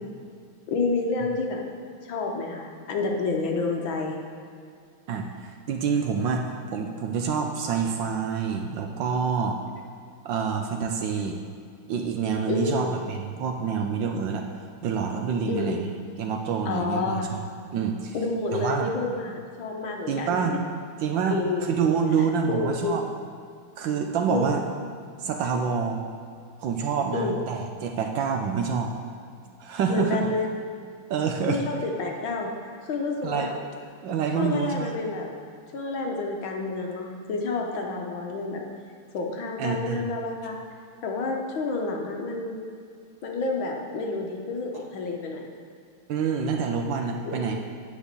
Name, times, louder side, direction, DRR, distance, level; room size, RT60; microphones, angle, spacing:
voice 1, 0.7-1.6 2.0-4.2 12.5-13.0 15.5-15.8 16.6-17.3 18.1-20.6 21.3-21.7 22.5-23.0 24.3-24.5 27.1-27.4 29.9-30.5 31.5-32.5 32.8-33.6 34.4-35.3 35.7-38.6 39.1-40.6 41.0-42.6 43.2-45.4 47.2-47.6, left 3 dB, 70° left, 1 dB, 1.6 m, -29 dB
voice 2, 5.1-9.6 10.2-11.4 11.9-14.4 14.8-15.9 16.2-17.4 17.7-18.2 18.5-18.9 20.1-20.6 21.0-23.0 23.8-24.6 25.2-26.1 26.6-28.9 29.6-30.2 31.1-31.6 33.2-33.5 34.0-35.0 39.6-40.0 46.1-47.6, right 6 dB, 70° right, 3 dB, 1.2 m, -27 dB
9.1 x 5.0 x 6.7 m, 2.3 s
omnidirectional pair, 2.4 m